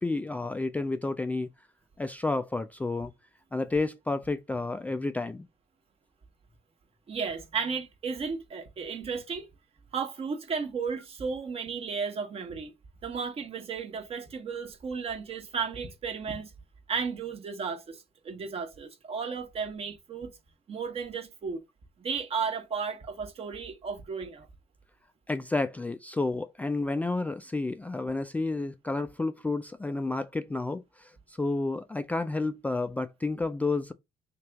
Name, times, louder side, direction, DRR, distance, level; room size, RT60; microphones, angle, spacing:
voice 1, 0.0-1.5 2.0-3.1 3.5-5.5 25.3-33.9, left 3 dB, 10° left, 0.3 m, -30 dB
voice 2, 7.1-9.5 9.9-12.7 13.0-16.5 16.9-20.3 20.7-21.6 22.0-24.5, right 5 dB, 40° right, 1.1 m, -34 dB
3.1 x 2.9 x 3.4 m
supercardioid pair, 70°, 15 cm